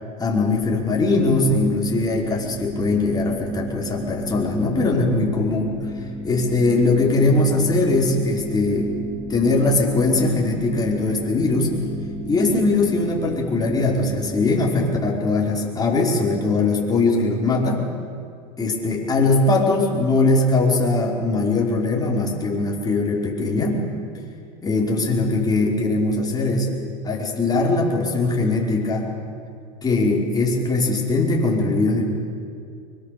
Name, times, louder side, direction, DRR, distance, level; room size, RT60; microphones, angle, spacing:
voice 1, 0.2-5.7 6.2-8.9 9.3-11.7 12.2-17.8 18.6-23.8 24.6-26.7 27.0-29.1 29.8-32.0, left 2 dB, 20° left, -2 dB, 5.1 m, -21 dB
sound 1, 0.5-14.7, right 1 dB, 5° right, 1.7 m, -33 dB
24.0 x 23.0 x 7.0 m, 2.4 s
supercardioid pair, 110°, 18 cm